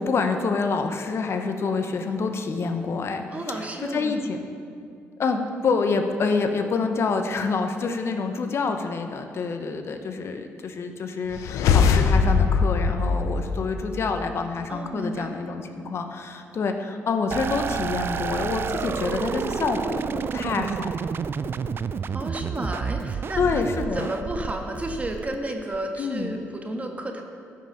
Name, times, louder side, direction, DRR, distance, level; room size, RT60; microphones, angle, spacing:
voice 1, 0.0-3.2 3.5-4.4 4.7-4.9 5.2-20.9 23.4-24.1 26.0-26.5, left 4 dB, 55° left, 6 dB, 0.8 m, -27 dB
voice 2, 3.3-4.3 14.7-15.3 22.1-23.6 23.9-27.2, right 1 dB, 25° right, 3 dB, 1.4 m, -32 dB
sound 1, 11.3-14.1, left 5 dB, 90° left, 0.5 m, -21 dB
sound 2, 17.3-25.8, right 6 dB, 45° right, 0.3 m, -30 dB
13.5 x 5.8 x 5.5 m, 2.4 s
cardioid pair, 75°, 5 cm